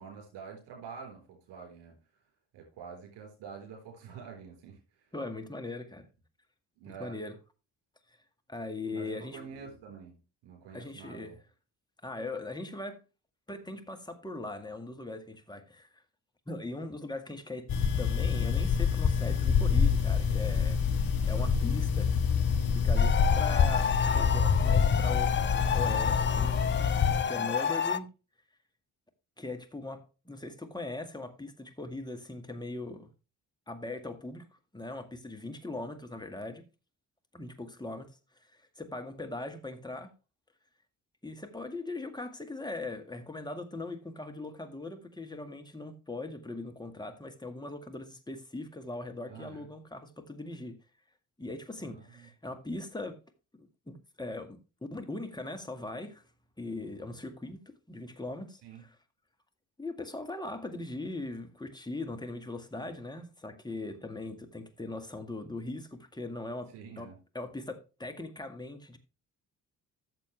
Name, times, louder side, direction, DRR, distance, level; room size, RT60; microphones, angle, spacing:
voice 1, 0.0-2.0 2.5-4.8 6.8-7.2 8.9-10.2 10.4-11.3 27.2-27.5 49.3-49.7 51.8-52.3 58.6-58.8 66.7-67.2, right 6 dB, 60° right, 3.9 m, -47 dB
voice 2, 5.1-6.1 6.9-7.3 8.1-8.2 8.5-9.4 10.7-11.4 12.0-13.0 13.5-16.0 16.5-17.7 18.0-20.8 21.2-22.1 22.7-26.5 27.3-28.1 29.4-33.1 33.7-34.5 34.7-36.6 37.3-38.1 38.4-38.5 38.8-40.1 41.2-50.8 51.4-53.2 53.6-54.6 54.9-56.2 56.6-58.9 59.8-67.1 67.3-69.0, left 2 dB, 10° left, 1.9 m, -40 dB
sound 1, 17.7-27.2, left 6 dB, 45° left, 1.5 m, -26 dB
sound 2, 23.0-28.0, left 7 dB, 25° left, 0.6 m, -30 dB
13.5 x 6.8 x 3.3 m
figure-of-eight pair, 40°, 47 cm